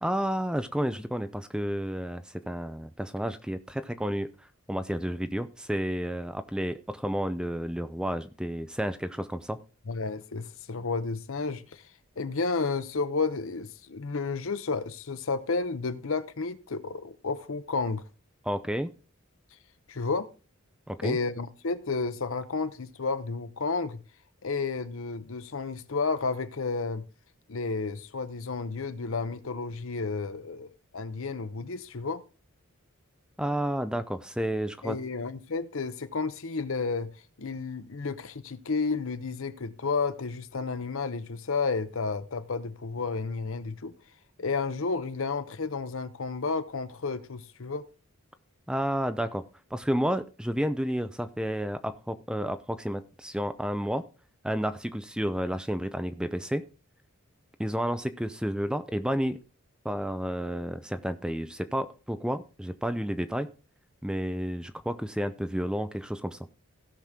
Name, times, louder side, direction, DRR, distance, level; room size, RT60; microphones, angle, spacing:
voice 1, 0.0-4.3 4.7-9.6 18.4-18.9 20.9-21.2 33.4-35.0 48.7-49.4 49.7-54.0 54.4-56.6 57.6-59.4 59.8-63.5 64.0-66.5, equal, 5° right, 0.5 m, -31 dB
voice 2, 9.9-11.9 12.2-18.1 19.9-20.3 21.0-24.0 24.4-27.0 27.5-32.2 34.8-37.1 37.4-44.0 44.4-47.9, left 4 dB, 65° left, 0.8 m, -31 dB
16.5 x 6.0 x 3.6 m
head